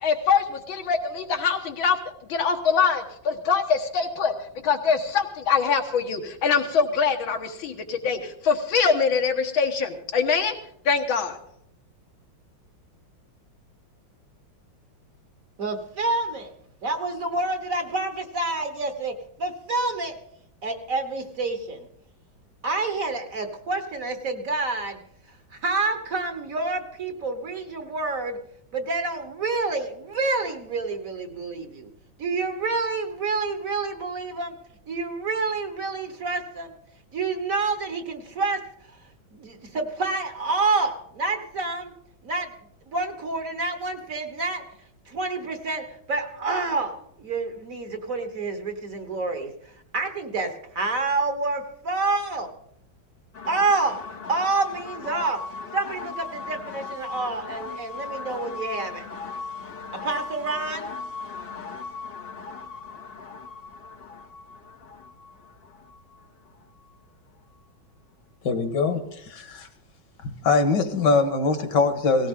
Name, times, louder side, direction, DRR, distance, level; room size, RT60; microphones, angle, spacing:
voice 1, 0.0-2.0 2.3-4.3 4.6-10.6 10.9-11.4, left 5 dB, 85° left, 5 dB, 2.1 m, -23 dB
voice 2, 15.6-16.5 16.8-20.2 20.6-21.9 22.6-25.0 25.5-28.4 28.7-31.9 32.2-34.6 34.9-36.7 37.1-38.6 39.3-41.9 42.2-42.5 42.9-44.6 45.1-49.5 49.9-52.5 53.5-54.0 54.3-55.4 55.7-59.1 59.9-60.9, right 3 dB, 50° right, 7 dB, 1.4 m, -28 dB
sound 1, 53.3-67.0, left 4 dB, 45° left, 0.8 m, -38 dB
voice 3, 68.4-69.7 70.2-72.3, left 4 dB, 65° left, 8 dB, 1.9 m, -23 dB
17.5 x 16.5 x 3.7 m, 0.72 s
omnidirectional pair, 2.1 m